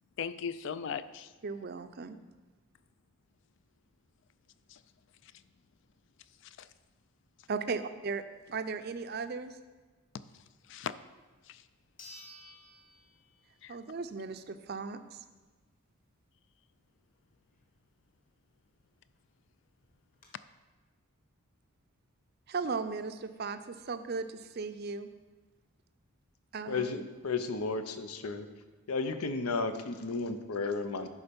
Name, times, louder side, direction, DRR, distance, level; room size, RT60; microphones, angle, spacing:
voice 1, 0.2-1.3 4.7-4.8 5.2-5.3 6.4-6.7 10.1-10.3 10.7-10.9 11.5-11.6 13.6-13.8, left 7 dB, 55° left, 0.3 m, -38 dB
voice 2, 1.4-2.2 7.5-8.2 8.5-9.5 13.7-15.2 22.5-25.1 26.5-27.1, right 4 dB, 45° right, 0.4 m, -36 dB
sound 1, 11.2-11.3 12.0-13.7 14.1-14.2 18.8-18.9 19.2-19.3 19.8-20.3, left 1 dB, 40° left, 1.5 m, -53 dB
voice 3, 26.7-28.5 28.9-31.1, left 4 dB, 90° left, 0.7 m, -33 dB
11.0 x 4.2 x 5.2 m
head